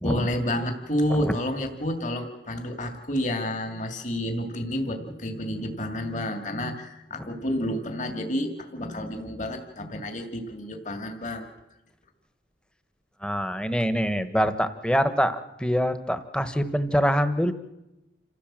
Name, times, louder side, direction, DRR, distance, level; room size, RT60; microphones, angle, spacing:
voice 1, 0.0-11.5, equal, 40° left, 5 dB, 2.4 m, -30 dB
voice 2, 13.2-17.5, equal, 5° left, 11 dB, 1.2 m, -25 dB
28.0 x 15.5 x 7.5 m, 0.96 s
head